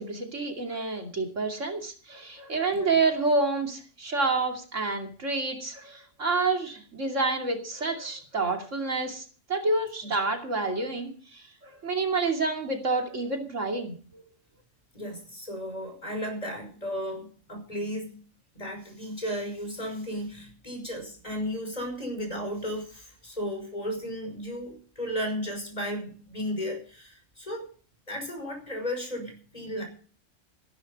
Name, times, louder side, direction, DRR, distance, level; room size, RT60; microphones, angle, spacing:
voice 1, 0.0-14.2, right 3 dB, 80° right, 3 dB, 3.0 m, -28 dB
voice 2, 14.9-18.2 18.5-27.7 28.1-29.8, equal, 30° left, 3 dB, 5.7 m, -34 dB
14.5 x 12.0 x 5.4 m, 0.40 s
omnidirectional pair, 1.3 m